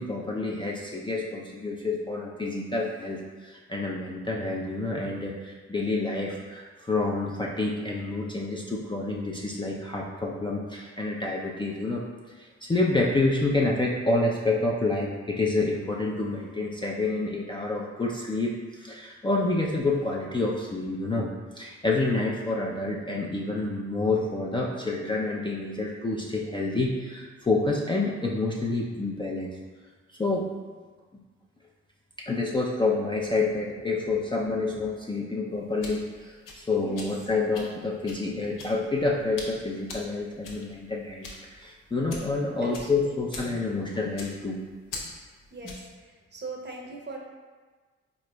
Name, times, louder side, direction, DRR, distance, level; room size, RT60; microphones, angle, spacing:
voice 1, 0.0-12.0 12.4-29.5 30.2-30.5 32.2-44.6 45.6-45.7, left 2 dB, 15° left, -3 dB, 0.4 m, -28 dB
sound 1, 35.5-46.0, left 3 dB, 80° left, 0.7 m, -44 dB
voice 2, 36.7-37.1 42.6-43.1 45.5-47.2, right 3 dB, 35° right, -1 dB, 0.8 m, -40 dB
3.9 x 3.0 x 2.2 m, 1.4 s
supercardioid pair, 50°, 32 cm